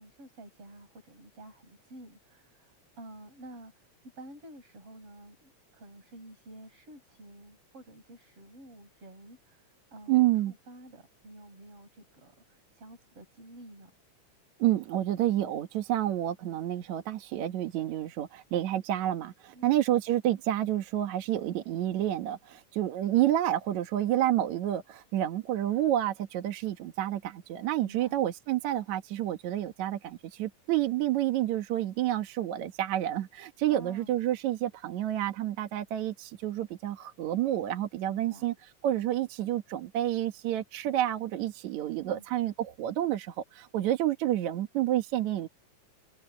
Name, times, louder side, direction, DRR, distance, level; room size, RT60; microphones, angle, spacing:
voice 1, 0.0-3.9 4.2-13.9 19.5-19.8 27.8-28.2 33.7-34.2 38.1-38.6 42.0-42.2, right 1 dB, 50° right, 6.5 m, -50 dB
voice 2, 10.1-10.5 14.6-38.5 38.8-45.5, right 13 dB, 75° right, 2.6 m, -29 dB
omnidirectional pair, 3.4 m